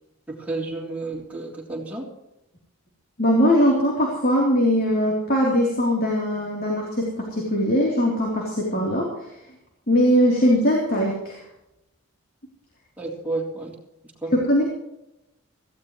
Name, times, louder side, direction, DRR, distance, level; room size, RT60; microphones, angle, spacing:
voice 1, 0.3-2.1 13.0-13.7 14.2-14.3, right 2 dB, 5° right, -2 dB, 3.5 m, -31 dB
voice 2, 3.2-9.1 9.9-11.4 14.3-14.6, equal, 45° left, -2 dB, 3.5 m, -20 dB
18.0 x 16.0 x 3.2 m, 0.87 s
head